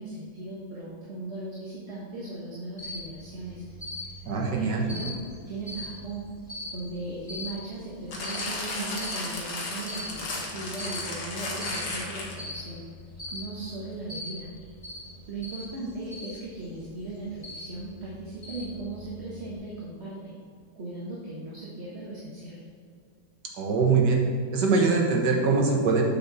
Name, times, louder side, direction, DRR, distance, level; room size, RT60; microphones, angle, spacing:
voice 1, 0.0-3.6 4.5-5.1 5.5-6.2 6.7-12.8 13.3-14.5 15.3-20.3 20.7-22.6, right 2 dB, 40° right, -6 dB, 1.5 m, -38 dB
Cricket, 2.8-19.6, left 1 dB, 30° left, 2.0 m, -42 dB
voice 2, 4.3-4.9 23.6-24.2 24.5-26.0, right 4 dB, 80° right, 0 dB, 1.9 m, -23 dB
sound 1, 8.1-12.6 13.3-13.4, left 2 dB, 75° left, 1.9 m, -34 dB
7.5 x 6.9 x 4.1 m, 2.2 s
omnidirectional pair, 1.8 m